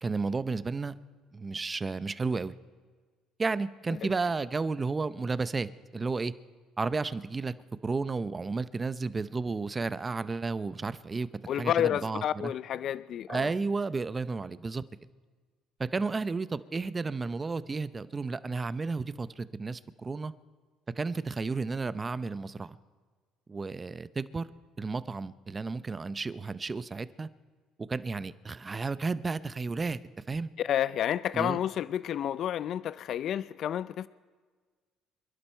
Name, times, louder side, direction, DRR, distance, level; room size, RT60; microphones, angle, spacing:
voice 1, 0.0-0.9 1.3-2.5 3.4-6.3 6.8-7.5 7.8-11.3 11.5-12.5 13.3-14.8 15.8-20.3 21.0-22.7 23.5-24.5 24.8-27.3 27.9-30.0 30.3-30.5 31.3-31.6, right 4 dB, 25° right, 0.7 m, -32 dB
voice 2, 11.5-13.5 30.6-34.1, left 10 dB, 60° left, 0.4 m, -30 dB
27.5 x 11.5 x 4.5 m
supercardioid pair, 90°, 0 cm